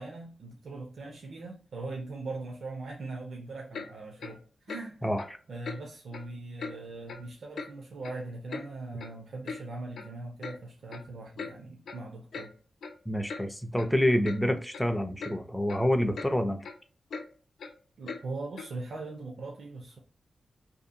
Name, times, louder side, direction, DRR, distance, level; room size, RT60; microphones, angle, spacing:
voice 1, 0.0-5.1 5.5-12.5 18.0-20.0, right 3 dB, 55° right, 0 dB, 0.5 m, -40 dB
Clock, 3.7-3.9 4.2-4.4 4.7-4.8 5.2-5.3 5.6-5.8 6.1-6.3 6.6-6.7 7.1-7.2 7.6-7.7 8.0-8.7 9.0-9.1 9.4-9.6 9.9-10.1 10.4-10.6 10.9-11.0 11.4-11.5 11.9-12.0 12.3-12.5 12.8-12.9 13.3-13.4 13.8-13.9 14.2-14.4 14.7-14.9 15.2-15.3 15.7-15.8 16.1-16.3 16.6-16.7 17.1-17.2 17.6-17.7 18.1-18.2 18.6-18.7, left 4 dB, 70° left, 0.4 m, -39 dB
voice 2, 13.1-16.6, equal, 5° left, 7 dB, 0.3 m, -27 dB
2.6 x 2.4 x 2.6 m, 0.40 s
wide cardioid pair, 180°, 0 cm